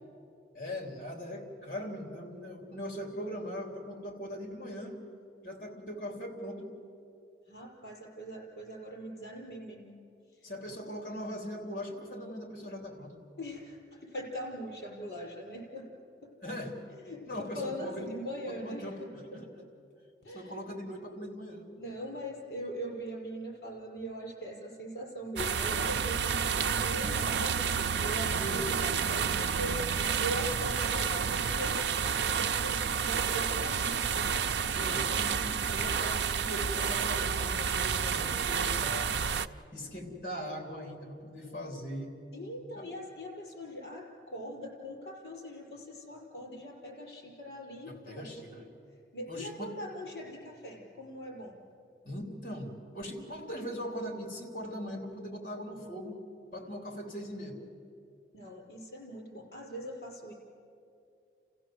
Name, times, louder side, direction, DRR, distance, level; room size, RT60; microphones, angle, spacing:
voice 1, 0.5-5.0 5.4-6.7 10.4-13.2 16.4-16.8 17.3-18.1 18.4-19.5 20.3-21.7 28.3-28.6 34.7-39.2 39.7-42.1 42.7-42.9 47.9-48.6 49.3-49.7 52.0-56.2 56.5-57.6, equal, 50° left, 3 dB, 3.2 m, -40 dB
voice 2, 7.5-10.0 10.4-10.5 13.4-15.9 16.2-16.3 16.9-18.9 19.3-19.4 20.2-20.5 21.8-27.6 28.0-34.1 34.8-35.3 42.3-48.4 49.1-51.6 58.3-60.3, equal, 65° left, -1 dB, 5.1 m, -41 dB
sound 1, 25.4-39.5, right 6 dB, 80° right, 0.5 m, -30 dB
29.5 x 15.5 x 7.7 m, 2.6 s
head